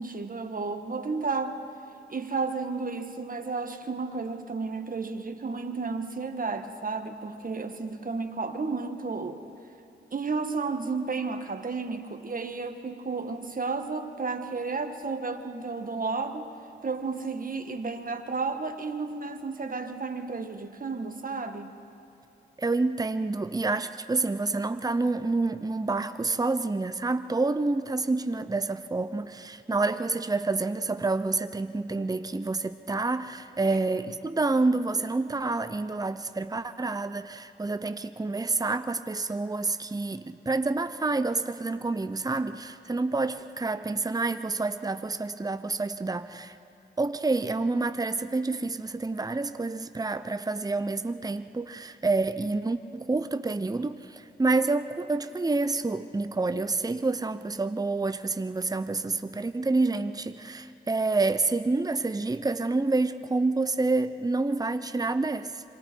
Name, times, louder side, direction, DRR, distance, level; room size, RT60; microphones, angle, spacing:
voice 1, 0.0-1.6 2.1-9.4 10.1-16.5 16.8-21.8, right 4 dB, 45° right, 6 dB, 1.7 m, -32 dB
voice 2, 22.6-46.5 47.0-65.6, right 3 dB, 20° right, 11 dB, 0.8 m, -28 dB
26.5 x 24.0 x 4.6 m, 3.0 s
cardioid pair, 50°, 19 cm